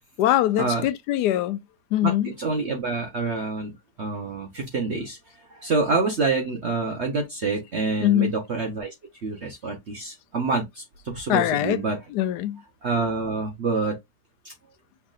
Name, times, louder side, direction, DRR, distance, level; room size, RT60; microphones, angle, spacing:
voice 1, 0.2-1.6 1.9-2.3 8.0-8.3 11.3-11.8 12.1-12.6, left 13 dB, 90° left, 1.2 m, -22 dB
voice 2, 2.4-8.9 9.2-12.0 12.8-14.0 14.4-14.5, right 3 dB, 50° right, 1.1 m, -27 dB
5.6 x 3.5 x 2.4 m
omnidirectional pair, 1.7 m